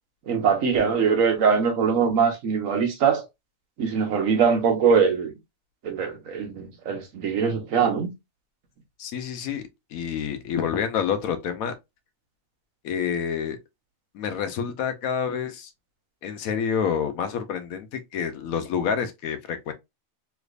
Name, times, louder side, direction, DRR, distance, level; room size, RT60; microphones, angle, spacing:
voice 1, 0.3-3.2 3.8-5.3 5.8-8.1, right 6 dB, 70° right, 1.2 m, -22 dB
voice 2, 9.0-9.6 9.9-11.7 12.8-13.6 14.1-15.7 16.2-19.7, left 7 dB, 85° left, 1.1 m, -28 dB
3.3 x 3.1 x 2.3 m
omnidirectional pair, 1.5 m